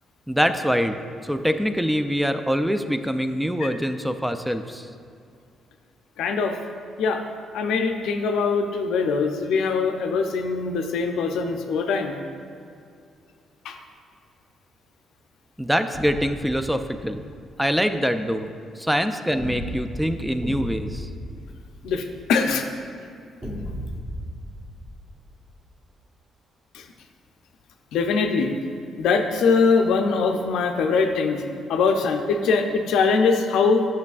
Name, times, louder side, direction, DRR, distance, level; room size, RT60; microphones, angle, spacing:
voice 1, 0.3-4.9 15.6-17.3 17.6-21.1, equal, 5° right, 9 dB, 0.3 m, -24 dB
voice 2, 6.2-6.6 7.0-7.2 7.5-12.1 13.6-13.8 21.8-22.7 26.7-26.9 27.9-28.5 29.0-31.4 31.7-33.9, left 4 dB, 85° left, 5 dB, 0.5 m, -22 dB
sound 1, 15.9-17.3 19.4-22.3 23.4-25.6, equal, 20° right, 1.1 m, -35 dB
8.2 x 6.3 x 2.4 m, 2.4 s
cardioid pair, 90°, 0 cm